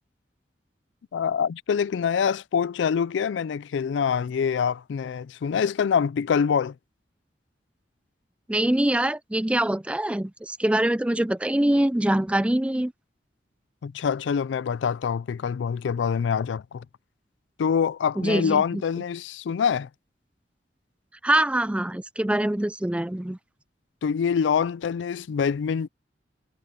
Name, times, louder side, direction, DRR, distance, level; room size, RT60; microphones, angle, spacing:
voice 1, 1.1-6.7 13.8-16.8 17.6-19.9 24.0-25.9, left 7 dB, 85° left, 0.4 m, -25 dB
voice 2, 8.5-12.9 18.2-18.8 21.2-23.4, right 1 dB, 5° right, 0.4 m, -24 dB
head